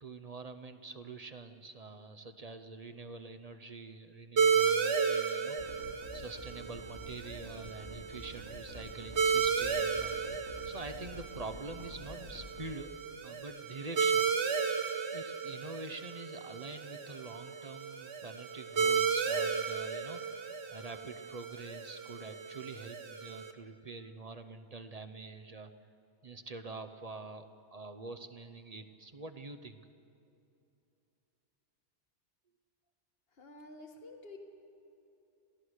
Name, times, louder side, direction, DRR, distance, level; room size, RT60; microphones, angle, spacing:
voice 1, 0.0-13.0 13.2-14.3 15.1-25.7 26.2-29.8, right 3 dB, 35° right, 8 dB, 0.9 m, -46 dB
sound 1, 4.4-23.5, right 6 dB, 75° right, 1.4 m, -34 dB
sound 2, 5.6-12.7, left 2 dB, 80° left, 2.6 m, -50 dB
voice 2, 33.4-34.4, left 2 dB, 60° left, 3 dB, 1.8 m, -50 dB
27.5 x 16.0 x 6.5 m, 2.7 s
omnidirectional pair, 1.2 m